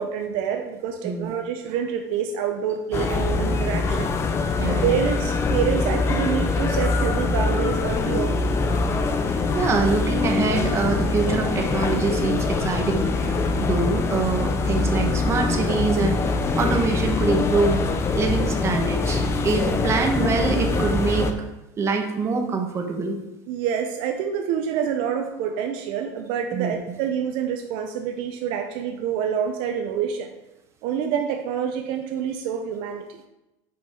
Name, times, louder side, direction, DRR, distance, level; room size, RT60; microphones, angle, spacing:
voice 1, 0.0-4.1 4.8-8.5 23.5-30.3 30.8-33.1, right 8 dB, 65° right, 5 dB, 0.6 m, -27 dB
voice 2, 1.0-1.3 4.6-5.0 9.5-17.8 18.1-21.3 21.8-23.2 26.5-27.0, right 4 dB, 30° right, 4 dB, 1.0 m, -25 dB
sound 1, 2.9-21.3, left 3 dB, 30° left, 0.6 m, -23 dB
5.5 x 5.3 x 4.4 m, 0.96 s
supercardioid pair, 120°, 10 cm